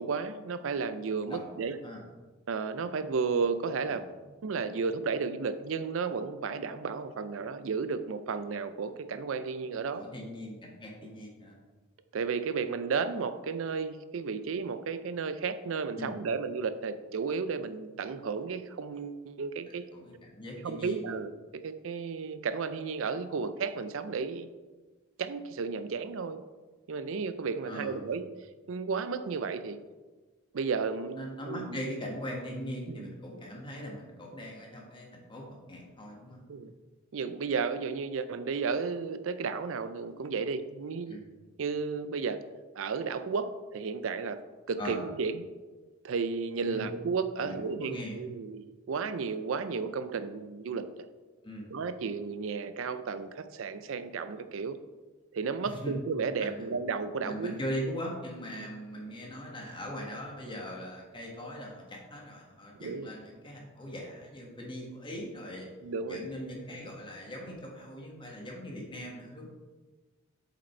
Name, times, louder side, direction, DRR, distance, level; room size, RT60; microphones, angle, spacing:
voice 1, 0.0-1.8 2.5-4.0 4.4-10.0 12.1-19.8 20.6-24.5 25.2-26.4 26.9-28.2 28.7-29.8 30.5-31.8 32.9-33.1 36.5-36.7 37.1-41.2 41.6-42.4 42.8-44.4 44.7-45.4 46.0-50.9 51.7-54.8 55.3-57.5 58.6-58.7 62.8-63.1 65.8-66.2, right 5 dB, 70° right, 12 dB, 0.4 m, -33 dB
voice 2, 1.3-2.0 3.9-4.0 9.9-11.6 16.0-16.1 19.9-21.0 27.6-28.0 31.2-36.4 41.1-41.3 44.8-45.0 46.7-46.9 47.4-48.2 51.4-51.7 55.6-55.9 56.4-56.7 57.2-65.7 66.1-69.5, equal, 25° left, -1 dB, 1.6 m, -40 dB
7.2 x 5.2 x 4.4 m, 1.3 s
head